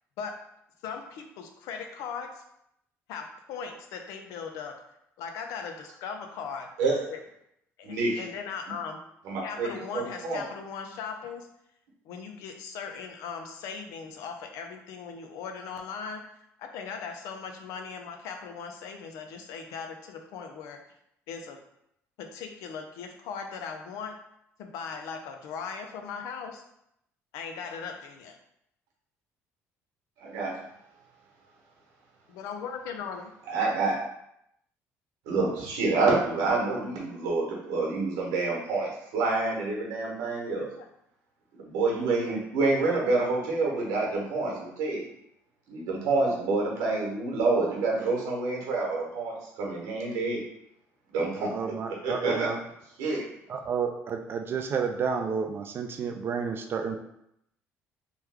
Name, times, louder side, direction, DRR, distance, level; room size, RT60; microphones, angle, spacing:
voice 1, 0.8-2.4 3.1-4.7 5.2-6.7 7.1-7.2 7.8-9.0 9.4-11.5 12.1-16.2 16.6-20.8 21.3-21.6 22.2-24.1 24.6-26.6 27.3-28.4 32.3-33.3 40.7-40.9, left 6 dB, 80° left, 5 dB, 0.5 m, -38 dB
voice 2, 7.8-8.2 9.2-10.4 30.2-30.5 33.5-33.9 35.3-40.7 41.5-45.0 45.7-50.4 51.1-51.5 52.0-52.5 53.0-53.2, right 3 dB, 90° right, -2 dB, 1.0 m, -27 dB
voice 3, 51.4-52.6 53.5-57.0, right 6 dB, 45° right, 5 dB, 0.3 m, -31 dB
3.0 x 2.3 x 3.4 m, 0.78 s
cardioid pair, 100°, 6 cm